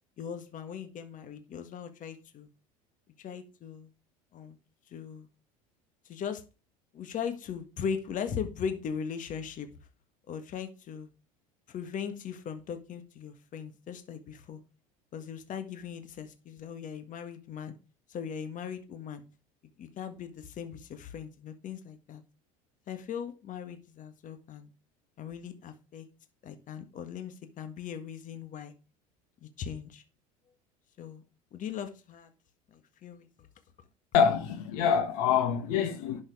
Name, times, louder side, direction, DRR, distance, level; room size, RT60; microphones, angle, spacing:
voice 1, 0.2-2.5 3.2-3.9 4.3-4.6 4.9-5.3 6.1-6.4 6.9-9.7 10.3-11.1 11.7-14.6 15.1-17.8 18.1-19.2 19.8-22.2 22.9-24.7 25.2-26.1 26.4-28.7 29.4-30.0 31.0-31.2 31.5-32.3 32.7-33.3, left 7 dB, 45° left, 1.7 m, -39 dB
voice 2, 34.1-36.2, left 7 dB, 70° left, 1.9 m, -25 dB
11.0 x 6.4 x 4.8 m
hypercardioid pair, 80°, 19 cm